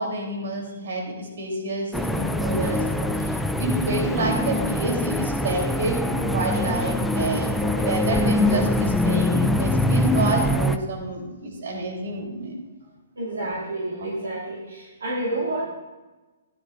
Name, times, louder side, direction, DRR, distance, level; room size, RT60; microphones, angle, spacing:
voice 1, 0.0-12.5 13.4-13.5 14.0-14.1, right 2 dB, 70° right, 0 dB, 3.1 m, -29 dB
sound 1, 1.9-10.8, left 1 dB, ahead, 0.4 m, -23 dB
voice 2, 13.2-15.7, right 1 dB, 85° right, -5 dB, 2.4 m, -29 dB
14.0 x 10.5 x 2.5 m, 1.2 s
hypercardioid pair, 140°, 0 cm